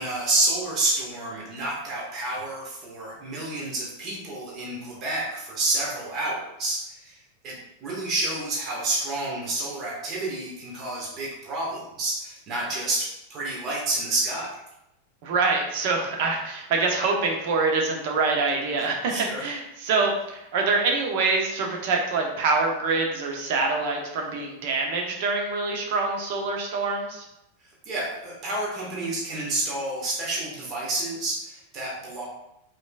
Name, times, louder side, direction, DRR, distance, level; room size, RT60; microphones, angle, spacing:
voice 1, 0.0-7.2 7.4-14.6 19.1-19.4 27.8-32.2, right 2 dB, 35° right, -5 dB, 1.6 m, -29 dB
voice 2, 15.2-19.1 19.4-27.2, right 4 dB, 50° right, 1 dB, 0.9 m, -25 dB
5.1 x 3.8 x 2.4 m, 0.84 s
figure-of-eight pair, 90°, 0 cm